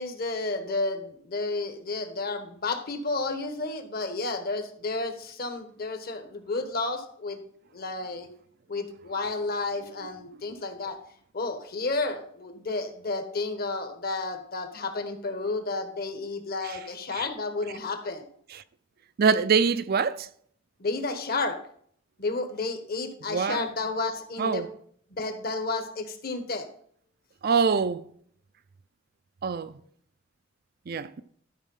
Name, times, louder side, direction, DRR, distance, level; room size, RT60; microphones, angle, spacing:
voice 1, 0.0-7.4 7.7-8.3 8.7-11.0 11.3-18.2 20.8-21.6 22.2-24.7 25.1-26.7, left 3 dB, 50° left, 1.2 m, -31 dB
voice 2, 19.2-20.3 23.3-23.7 24.4-24.7 27.4-28.0 29.4-29.8 30.9-31.2, right 5 dB, 50° right, 0.4 m, -24 dB
12.5 x 4.6 x 5.5 m
head